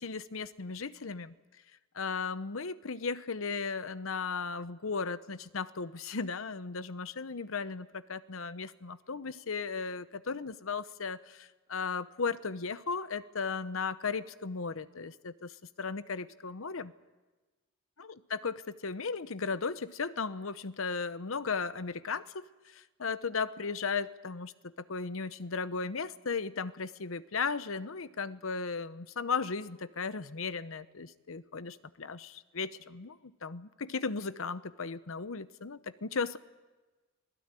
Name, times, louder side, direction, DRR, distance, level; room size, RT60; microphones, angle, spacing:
voice 1, 0.0-1.3 1.9-16.9 18.0-36.4, left 5 dB, 75° left, 14 dB, 0.9 m, -36 dB
26.0 x 17.5 x 9.1 m, 1.2 s
head